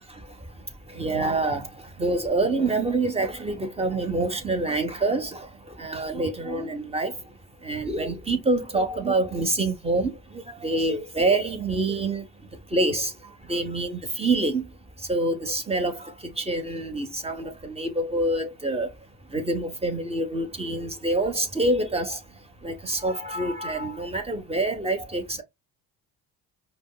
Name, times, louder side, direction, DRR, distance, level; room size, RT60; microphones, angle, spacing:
voice 1, 0.1-25.4, right 2 dB, 15° right, 1.1 m, -27 dB
5.0 x 2.1 x 2.3 m
supercardioid pair, 65°, 43 cm